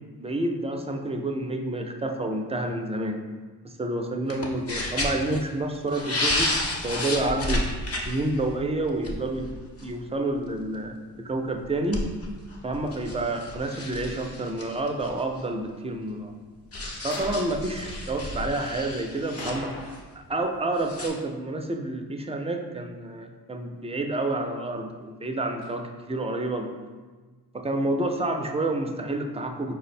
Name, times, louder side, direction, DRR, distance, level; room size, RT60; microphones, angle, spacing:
voice 1, 0.2-3.2 3.6-6.5 6.8-7.7 8.0-10.9 11.2-12.0 12.6-16.3 17.0-19.7 20.1-26.7 27.5-29.7, right 2 dB, 15° right, 3 dB, 0.4 m, -29 dB
sound 1, 4.3-5.4 5.7-10.0 10.4-10.6 11.5-15.4 16.7-20.0 20.8-21.1, left 1 dB, 35° left, 0.8 m, -31 dB
sound 2, 17.1-17.5 19.4-20.2 20.5-20.6 25.6-25.7, left 1 dB, 60° left, 0.9 m, -39 dB
4.6 x 2.1 x 4.1 m, 1.4 s
cardioid pair, 65°, 41 cm